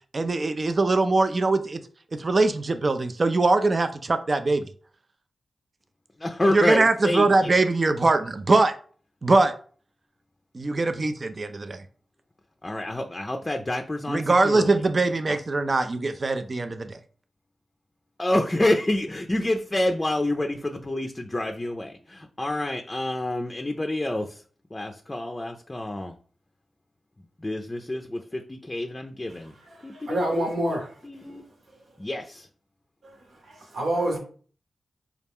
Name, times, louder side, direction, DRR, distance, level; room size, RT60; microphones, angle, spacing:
voice 1, 0.1-1.8 2.2-4.7 6.5-8.7 9.2-9.5 10.5-11.8 14.1-17.0, right 3 dB, 50° right, 0.4 m, -22 dB
voice 2, 6.2-7.6 12.6-14.8 15.3-15.4 18.2-24.4 24.7-26.1 27.4-29.5 29.8-30.8 31.0-31.4 32.0-32.5, left 1 dB, 30° left, 0.4 m, -28 dB
voice 3, 29.3-30.9 33.0-33.2 33.4-34.2, right 1 dB, 80° right, 1.1 m, -28 dB
4.1 x 2.4 x 3.5 m
supercardioid pair, 40°, 0 cm